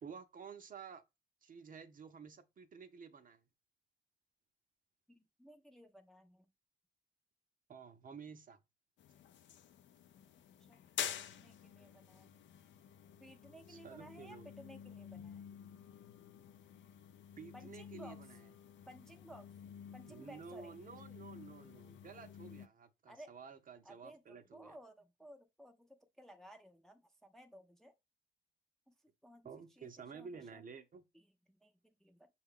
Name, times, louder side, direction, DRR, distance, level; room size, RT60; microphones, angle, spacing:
voice 1, 0.0-1.0 1.4-3.4 7.7-8.6 13.7-14.5 17.4-18.4 20.1-24.8 29.4-31.0, right 6 dB, 45° right, 0.7 m, -52 dB
voice 2, 5.1-6.4 10.7-10.8 11.2-12.4 13.2-15.4 17.5-18.2 18.9-19.5 19.9-20.7 23.1-23.3 23.8-27.9 28.9-29.0 29.2-30.6 31.1-32.3, equal, ahead, 0.5 m, -57 dB
sound 1, 9.0-22.7, left 9 dB, 70° left, 0.5 m, -49 dB
6.1 x 2.3 x 3.6 m
cardioid pair, 90°, 20 cm